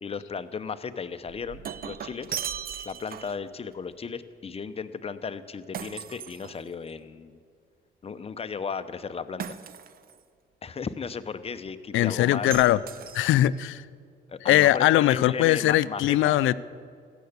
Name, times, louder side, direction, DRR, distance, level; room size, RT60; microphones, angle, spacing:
voice 1, 0.0-2.4 2.9-7.4 8.0-9.6 10.6-12.5 14.3-16.3, left 5 dB, 30° left, 11 dB, 0.7 m, -35 dB
Shatter, 1.3-3.5 5.7-7.0 9.4-10.2 12.5-13.6, right 8 dB, 50° right, 0.5 m, -38 dB
voice 2, 11.9-12.8 13.1-13.8 14.5-16.5, left 14 dB, 80° left, 18 dB, 0.4 m, -21 dB
15.5 x 7.0 x 8.1 m, 2.1 s
cardioid pair, 90°, 20 cm